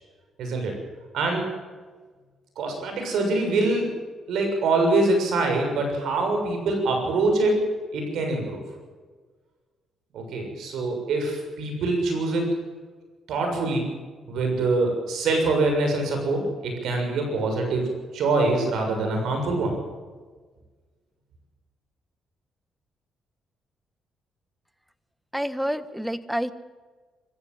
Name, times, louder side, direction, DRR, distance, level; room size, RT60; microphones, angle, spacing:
voice 1, 0.4-0.7 1.1-1.5 2.6-3.9 4.3-7.6 7.9-8.6 10.1-12.5 13.3-13.9 14.3-19.7, right 2 dB, 75° right, 3 dB, 6.9 m, -24 dB
voice 2, 25.3-26.5, equal, 5° right, 13 dB, 1.3 m, -28 dB
25.5 x 15.5 x 7.9 m, 1.4 s
cardioid pair, 90°, 0 cm